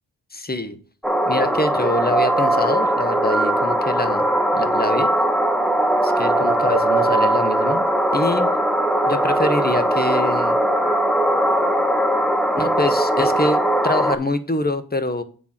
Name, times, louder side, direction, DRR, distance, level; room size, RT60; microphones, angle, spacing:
voice 1, 0.3-0.8 1.3-5.1 6.0-7.9 8.1-8.5 9.1-10.6 12.6-15.2, left 2 dB, 25° left, 11 dB, 1.0 m, -25 dB
sound 1, 1.0-14.2, right 1 dB, ahead, 1.0 m, -19 dB
8.1 x 3.8 x 5.8 m, 0.41 s
cardioid pair, 45°, 40 cm